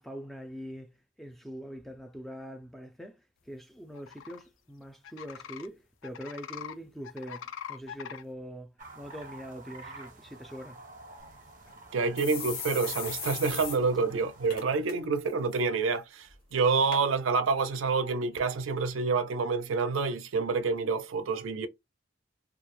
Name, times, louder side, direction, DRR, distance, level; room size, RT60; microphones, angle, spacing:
voice 1, 0.0-3.2 3.5-8.7 8.9-10.8, equal, ahead, 0.3 m, -43 dB
sound 1, 3.9-4.4 5.0-5.7 6.0-6.7 7.0-8.2, left 8 dB, 80° left, 0.4 m, -42 dB
sound 2, 8.8-14.6, right 2 dB, 40° right, 0.6 m, -49 dB
sound 3, 11.2-11.3 11.7-11.8 12.2-13.8 14.1-14.2 14.5-14.9 15.3-15.6 16.3-16.4 16.9-17.0 17.8-17.9, left 6 dB, 50° left, 0.6 m, -38 dB
voice 2, 11.9-21.7, right 4 dB, 85° right, 0.4 m, -28 dB
2.3 x 2.0 x 2.9 m
head